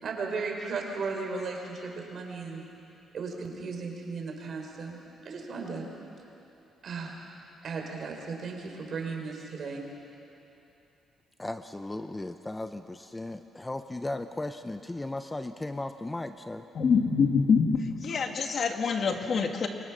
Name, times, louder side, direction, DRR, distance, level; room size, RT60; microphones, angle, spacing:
voice 1, 0.0-2.6 3.1-5.0 5.2-5.9 6.8-7.2 7.6-9.9, right 4 dB, 55° right, 1 dB, 4.8 m, -35 dB
voice 2, 11.4-16.7, left 2 dB, 15° left, 9 dB, 0.8 m, -36 dB
voice 3, 16.8-17.7 18.0-19.7, left 5 dB, 55° left, 4 dB, 2.0 m, -25 dB
28.0 x 23.5 x 6.3 m, 2.9 s
cardioid pair, 90°, 0 cm